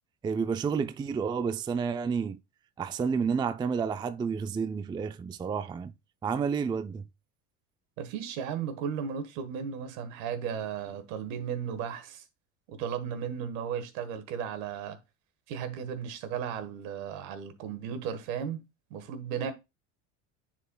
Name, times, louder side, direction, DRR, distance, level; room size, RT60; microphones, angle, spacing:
voice 1, 0.2-2.4 2.8-5.9 6.2-7.0, right 6 dB, 10° right, 0.3 m, -30 dB
voice 2, 8.0-12.2 12.7-15.0 15.5-18.6 18.9-19.5, right 7 dB, 80° right, 1.4 m, -35 dB
9.8 x 4.4 x 2.2 m
supercardioid pair, 90°, 40 cm